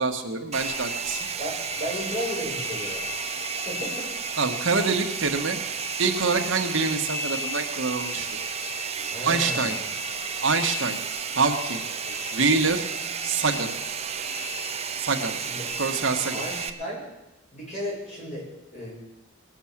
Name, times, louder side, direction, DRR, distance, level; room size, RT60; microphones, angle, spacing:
voice 1, 0.0-1.2 4.4-5.6 6.0-8.4 9.2-9.8 10.4-11.0 11.3-11.8 12.3-12.9 13.2-13.7 15.0-15.4 15.8-16.4, right 4 dB, 75° right, 4 dB, 1.4 m, -25 dB
Domestic sounds home sounds, 0.5-16.7, right 4 dB, 35° right, 0.7 m, -32 dB
voice 2, 1.4-3.1 3.6-4.1 9.1-9.9 12.0-12.2 15.4-15.7 16.3-17.1 17.5-18.9, equal, 40° left, -4 dB, 6.5 m, -34 dB
20.0 x 7.3 x 7.3 m, 0.98 s
head